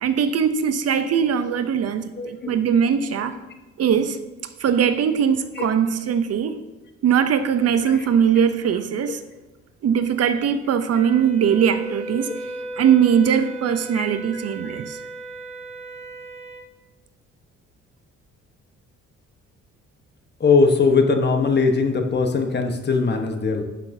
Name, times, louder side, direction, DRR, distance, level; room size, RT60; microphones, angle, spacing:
voice 1, 0.0-3.3 3.8-4.2 4.6-6.6 7.0-9.2 9.8-12.3 12.8-15.0, right 8 dB, 55° right, 0.6 m, -20 dB
voice 2, 2.2-2.5 5.6-5.7 8.4-8.5 13.9-14.1 14.6-14.7 20.4-23.6, left 4 dB, 35° left, 1.1 m, -20 dB
Wind instrument woodwind instrument, 10.9-16.7, right 2 dB, 20° right, 1.1 m, -36 dB
11.5 x 5.8 x 2.7 m
cardioid pair, 90°, 30 cm